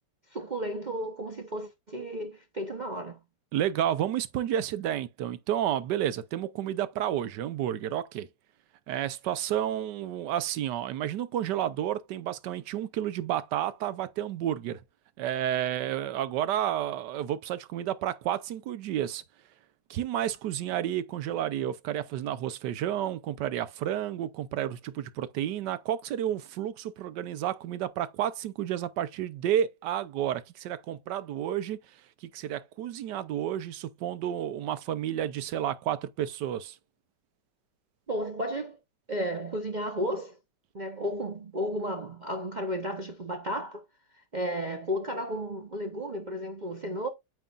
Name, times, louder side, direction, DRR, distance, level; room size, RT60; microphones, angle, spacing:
voice 1, 0.3-3.2 38.1-38.8 39.1-40.4 40.7-43.8 44.3-47.1, equal, 40° right, 0.7 m, -33 dB
voice 2, 3.5-8.3 8.9-14.8 15.2-19.2 19.9-31.8 32.2-36.8, right 11 dB, 80° right, 1.3 m, -31 dB
9.1 x 5.7 x 2.4 m
omnidirectional pair, 1.8 m